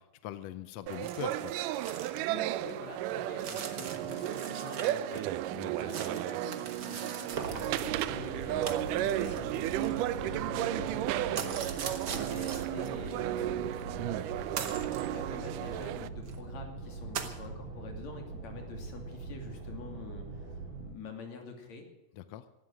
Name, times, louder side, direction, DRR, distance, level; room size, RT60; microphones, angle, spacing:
voice 1, 0.0-1.5 5.5-5.7 22.1-22.5, left 12 dB, 75° left, 12 dB, 1.6 m, -42 dB
sound 1, 0.9-16.1, right 13 dB, 90° right, 2.2 m, -34 dB
sound 2, 1.0-2.2 2.5-2.6 3.4-5.2 5.5-8.1 8.6-10.4 11.4-12.9 13.7-13.8 14.6-15.1 15.8-15.9 16.3-16.4 17.1-17.4, right 6 dB, 55° right, 1.2 m, -41 dB
voice 2, 2.1-14.5 15.0-20.5 20.8-21.9, left 4 dB, 60° left, 3 dB, 3.9 m, -47 dB
sound 3, 7.3-20.9, right 3 dB, 70° right, 5.3 m, -43 dB
16.5 x 12.0 x 6.4 m, 1.0 s
omnidirectional pair, 3.6 m